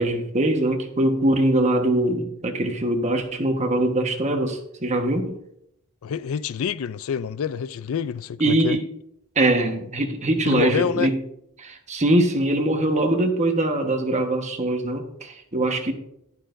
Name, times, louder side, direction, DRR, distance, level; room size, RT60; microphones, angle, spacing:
voice 1, 0.0-5.4 8.4-8.9 9.3-11.2 11.6-15.9, right 1 dB, 30° right, 1.3 m, -22 dB
voice 2, 6.0-8.8 10.5-11.1, left 7 dB, 70° left, 0.4 m, -27 dB
11.5 x 11.5 x 2.6 m
head